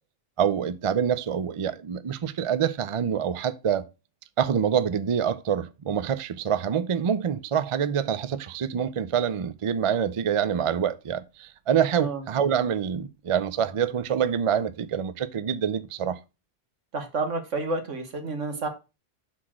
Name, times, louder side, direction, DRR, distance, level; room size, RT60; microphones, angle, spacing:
voice 1, 0.4-3.8 4.4-16.2, right 8 dB, 50° right, 0.3 m, -26 dB
voice 2, 16.9-18.7, right 3 dB, 85° right, 1.8 m, -30 dB
5.9 x 4.2 x 6.2 m
omnidirectional pair, 1.2 m